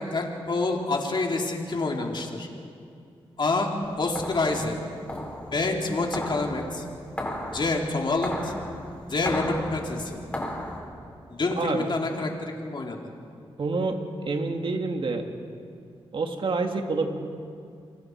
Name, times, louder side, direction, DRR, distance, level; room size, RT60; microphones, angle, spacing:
voice 1, 0.0-2.5 3.4-3.7 4.0-4.8 5.5-6.8 7.5-8.5 9.1-10.2 11.3-13.0, left 3 dB, 50° left, 1 dB, 3.3 m, -27 dB
sound 1, 3.8-10.8, left 1 dB, 10° left, 5.1 m, -36 dB
voice 2, 11.6-11.9 13.6-15.3 16.1-17.1, right 3 dB, 60° right, 4 dB, 2.3 m, -27 dB
28.5 x 24.0 x 4.7 m, 2.4 s
cardioid pair, 70°, 10 cm